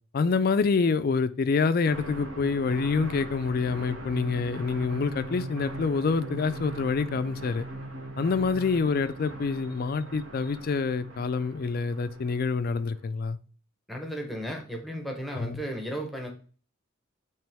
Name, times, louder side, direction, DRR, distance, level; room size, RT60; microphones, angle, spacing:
voice 1, 0.1-7.6 8.2-13.4 15.3-15.6, left 4 dB, 45° left, 0.4 m, -27 dB
sound 1, 1.9-13.0, right 1 dB, 70° right, 1.4 m, -40 dB
voice 2, 13.9-16.3, equal, ahead, 0.9 m, -34 dB
8.9 x 3.1 x 3.4 m
head